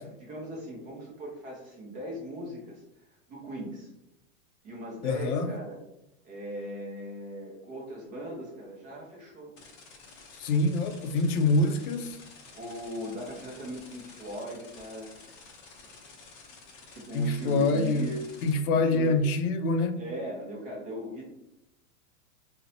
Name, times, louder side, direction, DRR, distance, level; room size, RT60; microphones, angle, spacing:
voice 1, 0.0-3.9 4.6-5.8 6.2-9.5 11.6-11.7 12.5-15.2 16.9-18.3 18.7-19.2 20.0-21.2, equal, 20° right, 0.4 m, -39 dB
voice 2, 5.0-5.5 10.4-12.2 17.1-18.1 18.4-20.0, left 2 dB, 80° left, 0.6 m, -25 dB
sound 1, 9.6-18.5, left 4 dB, 35° left, 0.5 m, -51 dB
2.6 x 2.1 x 2.6 m
supercardioid pair, 140°, 43 cm